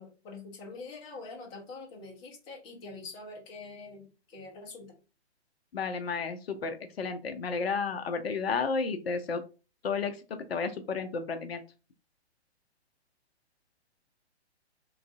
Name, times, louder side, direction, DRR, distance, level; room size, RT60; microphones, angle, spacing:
voice 1, 0.0-5.0, left 3 dB, 15° left, -1 dB, 0.6 m, -45 dB
voice 2, 5.7-9.4 9.8-11.6, left 5 dB, 65° left, 8 dB, 0.6 m, -32 dB
3.1 x 2.4 x 2.3 m, 0.32 s
figure-of-eight pair, 125°, 34 cm